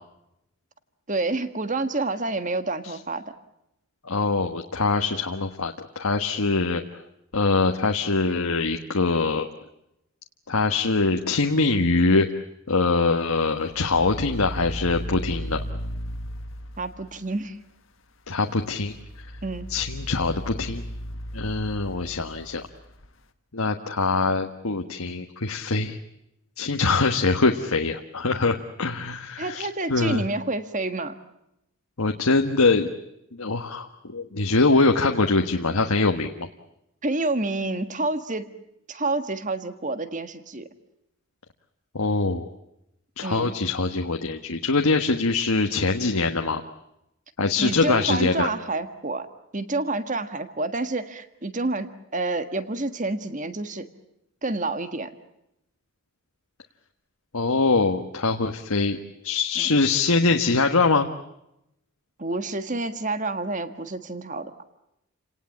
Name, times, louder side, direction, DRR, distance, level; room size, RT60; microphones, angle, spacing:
voice 1, 1.1-3.2 16.8-17.6 19.4-19.7 29.4-31.1 37.0-38.5 38.9-40.7 43.2-43.5 47.6-49.3 49.5-53.9 54.4-55.1 59.6-59.7 62.2-64.5, right 2 dB, 35° right, 10 dB, 1.6 m, -28 dB
voice 2, 4.0-6.8 7.3-9.5 10.5-12.3 12.7-15.6 18.3-18.9 19.7-20.8 21.3-22.6 23.5-26.0 26.6-30.2 32.0-32.9 33.3-36.5 41.9-42.5 43.2-46.6 47.4-48.5 57.3-61.1, left 3 dB, 80° left, 4 dB, 1.4 m, -23 dB
sound 1, 13.7-17.4 18.7-23.1, equal, 60° left, 1.7 m, -36 dB
29.5 x 18.5 x 8.5 m, 0.85 s
head